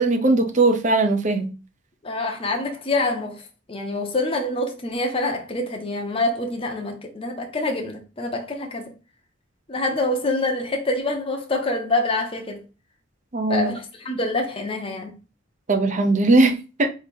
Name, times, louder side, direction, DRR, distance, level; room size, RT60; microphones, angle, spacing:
voice 1, 0.0-1.5 13.3-13.7 15.7-16.9, right 2 dB, 40° right, 0.7 m, -19 dB
voice 2, 2.0-8.9 9.7-12.6 13.5-15.2, left 2 dB, 30° left, 0.7 m, -26 dB
3.8 x 2.8 x 4.4 m
head